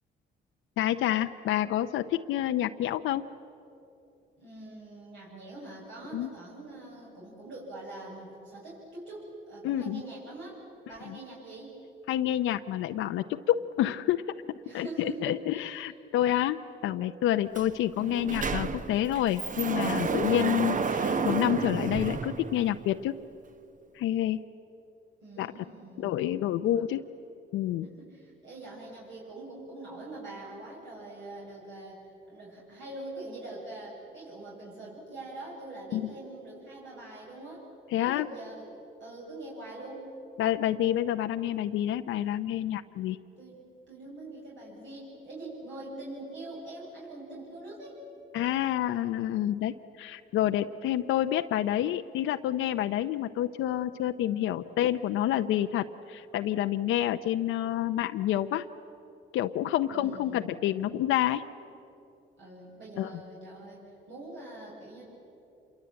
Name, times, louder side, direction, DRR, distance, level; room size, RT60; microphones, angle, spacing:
voice 1, 0.8-3.3 6.1-6.3 9.6-10.0 11.1-11.2 12.1-14.2 14.7-16.6 16.8-23.2 23.9-24.4 25.4-25.5 26.0-27.0 27.5-27.9 35.9-36.0 37.9-38.3 40.4-43.2 48.3-58.6 59.3-61.4 63.0-63.1, left 12 dB, 90° left, 8 dB, 0.7 m, -28 dB
voice 2, 4.4-10.6 10.9-11.8 14.6-15.8 25.2-26.3 26.6-26.8 27.8-37.7 38.0-38.7 39.0-40.1 43.4-48.0 59.9-60.5 62.4-65.0, right 2 dB, 70° right, -5 dB, 7.6 m, -44 dB
Sliding door, 17.5-17.7 18.0-23.0, right 5 dB, 40° right, 1.1 m, -31 dB
26.5 x 22.5 x 8.8 m, 2.8 s
cardioid pair, 90°, 20 cm